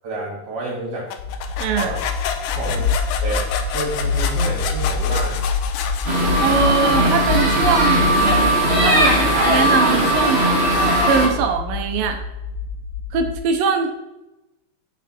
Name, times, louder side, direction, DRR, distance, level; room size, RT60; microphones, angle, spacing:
voice 1, 0.0-1.1 1.7-2.0 2.5-2.9 3.2-5.4, right 1 dB, 55° right, -6 dB, 3.4 m, -29 dB
sound 1, 1.1-6.8, left 7 dB, 90° left, 2.7 m, -29 dB
sound 2, 1.2-13.3, left 4 dB, 70° left, 1.7 m, -26 dB
voice 2, 1.6-1.9 6.4-8.1 8.8-9.1 9.4-10.5 11.1-12.2 13.1-13.9, right 5 dB, 75° right, 6 dB, 2.5 m, -21 dB
sound 3, 6.0-11.3, right 1 dB, 30° right, 1.2 m, -18 dB
8.9 x 7.2 x 4.4 m, 0.97 s
omnidirectional pair, 4.3 m